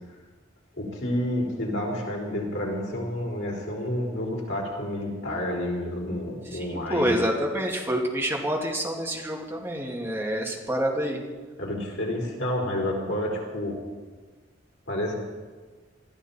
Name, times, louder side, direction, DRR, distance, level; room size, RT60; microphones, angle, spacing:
voice 1, 0.8-7.2 11.6-13.8 14.9-15.2, left 1 dB, 90° left, -2 dB, 4.4 m, -29 dB
voice 2, 6.5-11.2, equal, 10° right, -1 dB, 2.2 m, -27 dB
21.0 x 14.0 x 4.3 m, 1.4 s
head